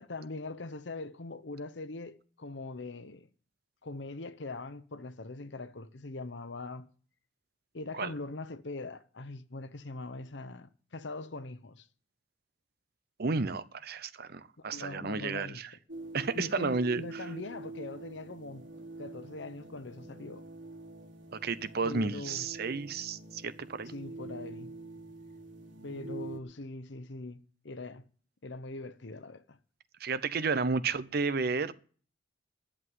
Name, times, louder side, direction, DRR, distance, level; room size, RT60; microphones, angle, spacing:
voice 1, 0.0-3.3 3.8-6.9 7.7-11.9 14.7-15.6 16.3-18.6 19.0-20.4 21.8-22.5 23.9-24.7 25.8-28.0 28.4-29.6, left 2 dB, 70° left, 0.9 m, -42 dB
voice 2, 13.2-15.7 16.1-17.0 21.4-23.9 30.0-31.7, right 4 dB, 55° right, 0.7 m, -32 dB
sound 1, 15.9-26.4, right 2 dB, 85° right, 3.2 m, -46 dB
11.0 x 7.7 x 9.6 m
head